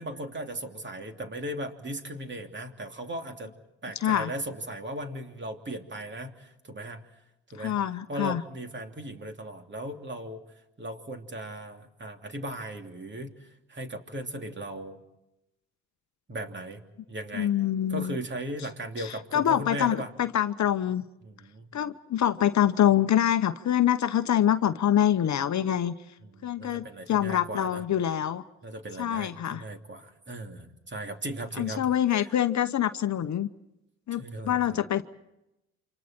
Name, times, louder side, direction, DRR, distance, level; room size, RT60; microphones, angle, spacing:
voice 1, 0.0-3.5 3.8-7.0 7.5-7.8 8.1-10.4 10.8-15.0 16.3-16.8 17.1-17.5 17.9-20.1 21.2-21.7 26.2-27.8 28.6-31.9 32.2-32.3 34.1-34.8, right 1 dB, 30° right, 5 dB, 3.0 m, -37 dB
voice 2, 7.6-8.4 17.3-18.2 19.0-21.0 21.7-25.9 26.4-28.4 29.0-29.6 31.6-33.5 34.1-35.0, left 10 dB, 50° left, 11 dB, 1.0 m, -25 dB
29.0 x 26.0 x 4.5 m, 0.90 s
supercardioid pair, 65°, 37 cm